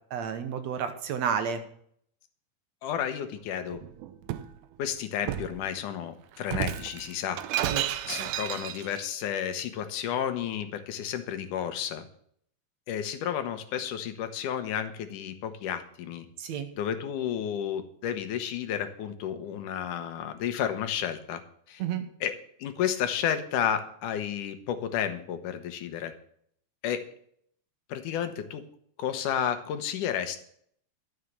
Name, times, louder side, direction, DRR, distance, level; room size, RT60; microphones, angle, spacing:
voice 1, 0.1-1.6 7.7-7.8 16.4-16.7 21.8-22.1, right 7 dB, 65° right, 8 dB, 2.2 m, -31 dB
voice 2, 2.8-3.8 4.8-7.4 8.1-12.1 12.9-16.3 16.8-21.4 21.7-21.8 22.2-22.3 22.6-26.1 26.8-27.1 27.9-28.6 29.0-30.4, left 9 dB, 85° left, 8 dB, 2.7 m, -31 dB
Shatter, 3.7-4.5 5.3-5.6 6.4-9.1, right 12 dB, 80° right, 2.2 m, -32 dB
13.0 x 6.7 x 7.4 m, 0.64 s
omnidirectional pair, 3.5 m